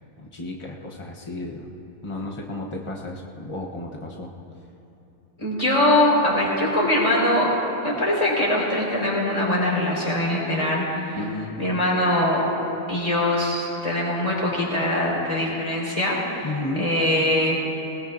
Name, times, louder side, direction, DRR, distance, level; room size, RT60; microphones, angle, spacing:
voice 1, 0.2-1.7 2.0-4.3 11.1-11.6 16.4-16.9, left 2 dB, 45° left, -2 dB, 0.3 m, -33 dB
voice 2, 5.4-7.5 7.8-11.1 11.6-12.4 12.9-16.5 16.8-17.6, left 1 dB, 15° left, -6 dB, 4.4 m, -22 dB
20.0 x 20.0 x 2.6 m, 2.9 s
omnidirectional pair, 2.1 m